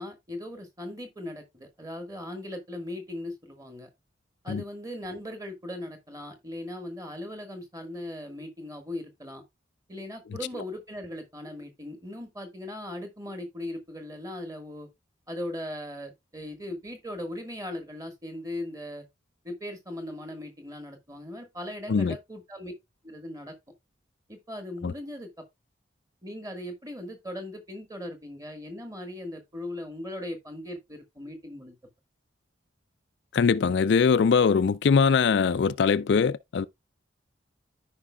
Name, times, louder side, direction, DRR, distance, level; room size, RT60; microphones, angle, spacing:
voice 1, 0.0-3.9 4.4-9.4 9.9-14.9 15.3-19.0 19.4-22.7 23.0-23.5 24.3-25.3 26.2-31.8, left 1 dB, 20° right, 1.6 m, -38 dB
voice 2, 33.3-36.6, left 5 dB, 60° left, 0.3 m, -22 dB
14.0 x 5.1 x 2.3 m
head